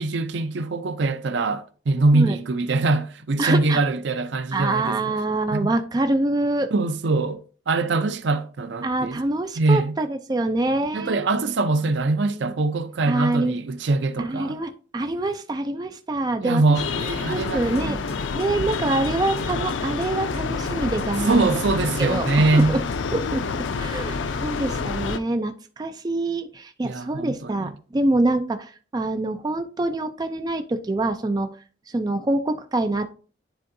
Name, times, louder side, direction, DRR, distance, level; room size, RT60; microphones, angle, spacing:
voice 1, 0.0-5.0 5.5-5.7 6.7-9.2 9.6-10.0 10.9-14.6 16.4-18.0 21.3-22.8 26.8-27.7, right 3 dB, 70° right, 0.5 m, -23 dB
voice 2, 3.4-3.8 4.5-6.7 8.8-11.3 12.2-12.5 13.1-13.6 14.2-16.6 17.3-18.0 18.4-21.4 22.0-22.3 22.5-22.8 23.1-31.5 31.9-33.1, right 2 dB, 20° right, 0.3 m, -25 dB
sound 1, 16.7-25.2, left 4 dB, 85° left, 0.5 m, -28 dB
sound 2, 17.5-23.0, left 1 dB, 35° left, 1.4 m, -39 dB
10.0 x 3.7 x 2.6 m
head